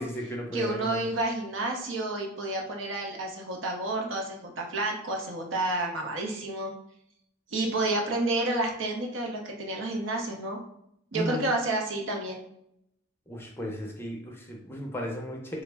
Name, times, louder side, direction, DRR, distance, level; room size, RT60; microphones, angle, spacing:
voice 1, 0.0-1.0 11.1-11.5 13.3-15.6, equal, 10° left, 0 dB, 0.4 m, -35 dB
voice 2, 0.5-6.7 7.5-10.6 11.1-12.4, right 2 dB, 75° right, 1 dB, 0.7 m, -30 dB
3.5 x 2.0 x 3.3 m, 0.75 s
head